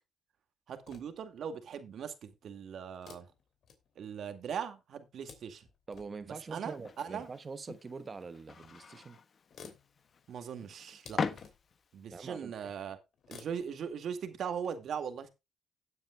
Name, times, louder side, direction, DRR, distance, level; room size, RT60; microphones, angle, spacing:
voice 1, 0.7-3.3 4.0-5.6 6.3-7.3 10.3-11.2 11.9-13.0 13.3-15.3, right 7 dB, 65° right, 2.1 m, -40 dB
sound 1, 0.8-1.4 2.9-4.3 4.9-6.3 7.5-7.6 8.6-8.7 9.0-9.1 9.3-11.9 13.1-14.7, left 6 dB, 65° left, 3.0 m, -56 dB
voice 2, 5.9-9.2 12.1-12.7, right 4 dB, 35° right, 1.2 m, -44 dB
sound 2, 6.7-12.0, left 5 dB, 45° left, 1.1 m, -42 dB
17.0 x 8.8 x 2.3 m
cardioid pair, 90°, 0 cm